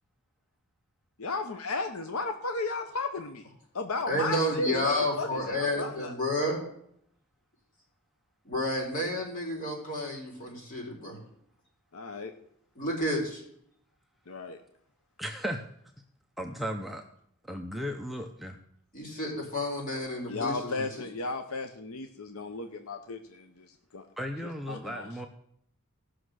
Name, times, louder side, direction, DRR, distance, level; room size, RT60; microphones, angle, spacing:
voice 1, 1.2-3.5 3.7-6.1 11.9-12.3 14.3-14.6 20.3-24.1 24.4-25.3, left 3 dB, 70° left, 7 dB, 0.9 m, -35 dB
voice 2, 4.1-6.6 8.4-11.2 12.8-13.4 18.9-20.8, left 1 dB, 40° left, -1 dB, 4.1 m, -30 dB
voice 3, 15.2-15.6 16.4-17.0 17.4-18.6 24.2-25.3, equal, ahead, 2 dB, 0.6 m, -35 dB
16.5 x 6.3 x 6.4 m, 0.70 s
head